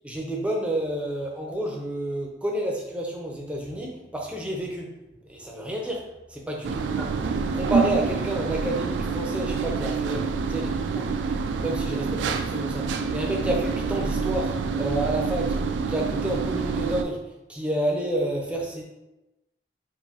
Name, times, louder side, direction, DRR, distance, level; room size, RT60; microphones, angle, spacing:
voice 1, 0.0-4.9 5.2-7.1 7.5-11.1 11.6-15.6 15.9-17.2 17.5-18.8, right 1 dB, 5° right, -1 dB, 0.5 m, -30 dB
sound 1, 6.6-17.0, right 5 dB, 80° right, 0.3 m, -27 dB
4.6 x 2.6 x 2.8 m, 0.98 s
head